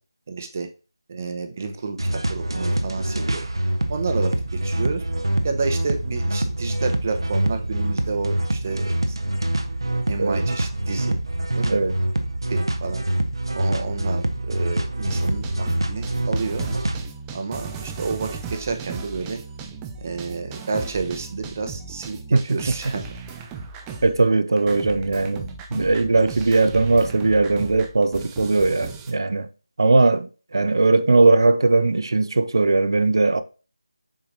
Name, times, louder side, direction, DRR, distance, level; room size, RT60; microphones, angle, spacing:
voice 1, 0.3-0.7 1.1-2.0 2.3-3.5 3.9-5.0 5.4-9.2 10.1-11.2 11.6-11.8 12.5-13.0 13.5-16.7 17.3-19.4 20.0-23.0 30.6-30.8, right 4 dB, 35° right, 0.8 m, -30 dB
sound 1, 2.0-17.0, right 1 dB, 75° right, 0.9 m, -25 dB
sound 2, 15.0-24.3 24.6-29.1, right 5 dB, 10° right, 0.4 m, -36 dB
voice 2, 24.0-29.5 29.8-33.4, right 3 dB, 60° right, 0.6 m, -19 dB
7.0 x 5.0 x 2.7 m
figure-of-eight pair, 165°, 3 cm